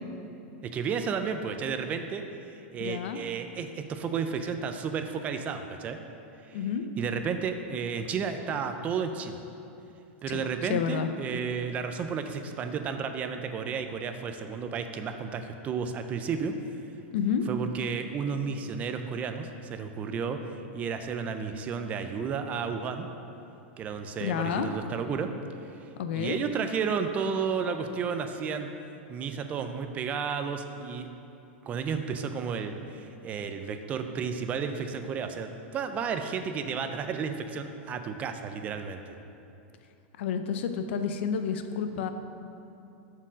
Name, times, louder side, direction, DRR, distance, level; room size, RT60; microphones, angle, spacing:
voice 1, 0.6-6.0 6.4-6.6 7.0-9.4 10.2-16.5 17.5-23.1 23.8-25.3 25.6-28.7 29.1-31.1 31.6-39.2, right 6 dB, 20° right, 7 dB, 0.3 m, -32 dB
voice 2, 2.8-3.2 6.5-6.8 10.3-11.1 17.1-17.4 24.2-24.7 26.0-26.4 40.2-42.1, left 7 dB, 70° left, 8 dB, 0.5 m, -30 dB
7.2 x 4.6 x 6.1 m, 2.8 s
supercardioid pair, 160°, 6 cm